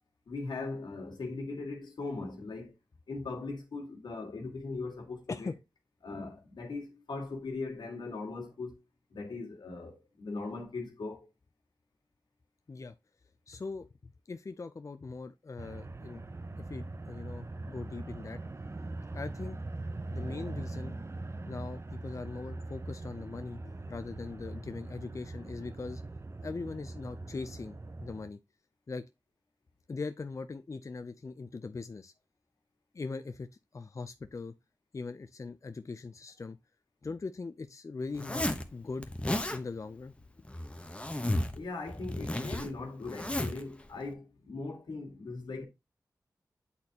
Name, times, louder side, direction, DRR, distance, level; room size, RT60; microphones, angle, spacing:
voice 1, 0.3-2.7 3.1-5.5 6.0-8.8 9.1-11.3 41.5-45.6, left 3 dB, 90° left, 1.8 m, -39 dB
voice 2, 13.5-16.2 16.7-18.4 19.1-19.6 20.1-21.0 21.5-26.0 26.4-28.4 28.9-29.0 29.9-32.1 32.9-33.5 33.7-34.5 34.9-36.6 37.0-39.1 39.5-40.1, left 4 dB, 45° left, 0.5 m, -41 dB
sound 1, 15.6-28.3, right 2 dB, 40° right, 0.6 m, -41 dB
Zipper (clothing), 38.1-38.7 39.0-39.6 40.4-41.6 41.9-43.6, left 1 dB, 15° left, 0.9 m, -33 dB
8.5 x 4.1 x 2.8 m
cardioid pair, 50°, 7 cm